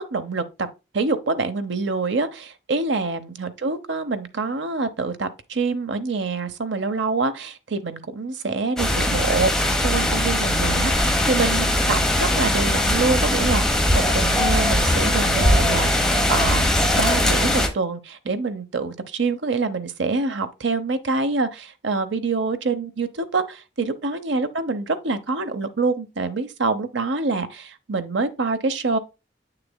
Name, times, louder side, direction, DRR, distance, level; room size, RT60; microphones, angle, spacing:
voice 1, 0.1-0.7 0.9-9.5 9.8-13.6 13.9-15.9 16.3-16.7 17.0-29.0, right 3 dB, 75° right, 0.8 m, -25 dB
sound 1, 8.8-17.7, left 1 dB, 5° left, 1.0 m, -20 dB
8.0 x 6.6 x 2.2 m
head